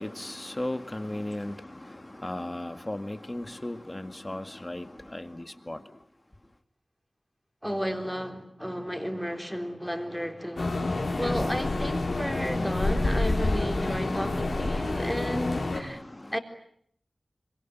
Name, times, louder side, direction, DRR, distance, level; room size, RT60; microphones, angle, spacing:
voice 1, 0.0-5.8 16.1-16.3, left 1 dB, 25° left, 2.0 m, -36 dB
voice 2, 7.6-10.7 11.2-16.0 16.3-16.4, equal, ahead, 3.7 m, -33 dB
sound 1, 10.6-15.8, left 2 dB, 70° left, 4.9 m, -28 dB
25.5 x 24.0 x 9.3 m
wide cardioid pair, 75°, 0 cm